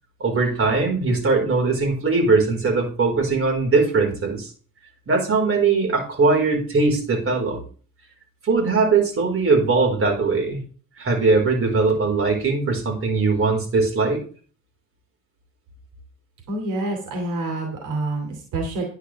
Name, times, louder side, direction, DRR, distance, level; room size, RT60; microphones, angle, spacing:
voice 1, 0.2-4.5 5.1-7.6 8.4-10.6 11.0-14.2, right 4 dB, 45° right, 1 dB, 4.8 m, -20 dB
voice 2, 16.5-18.8, right 2 dB, 85° right, 2 dB, 2.7 m, -27 dB
10.5 x 10.0 x 3.5 m, 0.41 s
cardioid pair, 90°, 30 cm